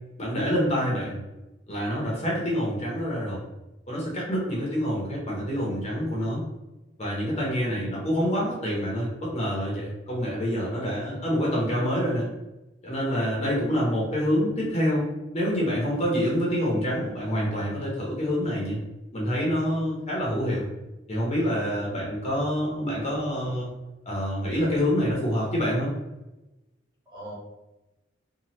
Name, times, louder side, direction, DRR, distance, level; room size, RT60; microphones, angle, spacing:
voice 1, 0.2-1.2 1.7-3.4 3.9-6.4 7.0-12.3 12.8-15.1 15.3-18.8 19.1-20.7 21.1-23.7 24.1-25.9, equal, 35° left, -4 dB, 0.8 m, -26 dB
voice 2, 10.9-11.4 21.8-21.9 27.1-27.3, equal, 25° right, -8 dB, 1.3 m, -42 dB
2.8 x 2.3 x 3.1 m, 1.0 s
head